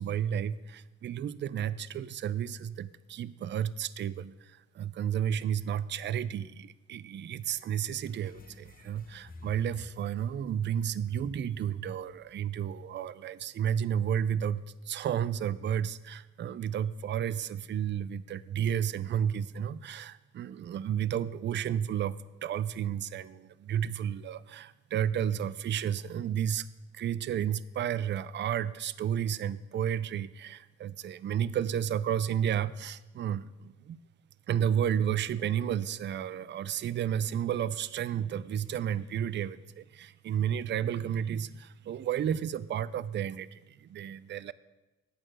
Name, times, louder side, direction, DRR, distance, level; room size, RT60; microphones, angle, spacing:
voice 1, 0.0-22.2 22.4-26.7 26.9-34.0 34.5-44.5, right 9 dB, 40° right, 16 dB, 0.4 m, -32 dB
sound 1, 8.0-13.0, left 3 dB, 30° left, 0.8 m, -53 dB
8.8 x 6.6 x 6.1 m, 1.1 s
cardioid pair, 90°, 30 cm